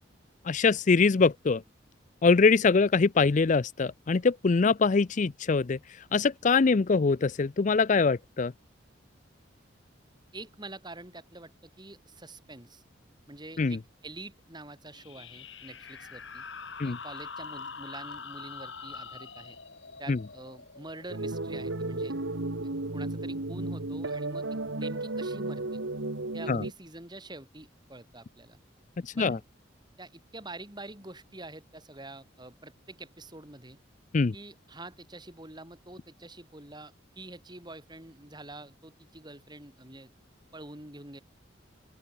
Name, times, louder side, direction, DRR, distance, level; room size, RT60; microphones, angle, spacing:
voice 1, 0.4-1.6 2.2-5.8 6.1-8.5 13.6-13.8 16.8-17.0 20.1-20.2 26.5-26.6 29.0-29.4 34.1-34.3, left 4 dB, 40° left, 0.4 m, -23 dB
voice 2, 10.3-12.8 13.3-16.4 16.8-19.6 20.0-22.2 22.9-25.8 26.3-28.6 29.2-29.4 30.0-33.8 34.3-40.1 40.5-41.2, right 2 dB, 25° right, 5.9 m, -46 dB
sound 1, 14.9-22.2, left 5 dB, 70° left, 6.1 m, -44 dB
sound 2, 21.1-26.7, right 2 dB, 85° right, 1.7 m, -33 dB
open air
head